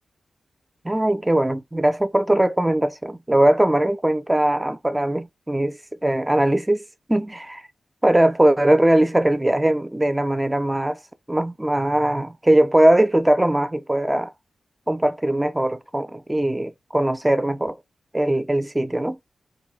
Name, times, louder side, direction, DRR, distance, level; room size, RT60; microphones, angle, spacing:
voice 1, 0.8-6.8 7.1-7.6 8.0-11.0 11.3-14.3 14.9-17.8 18.1-19.2, right 1 dB, 15° right, 0.4 m, -20 dB
2.6 x 2.1 x 3.9 m
cardioid pair, 70°, 0 cm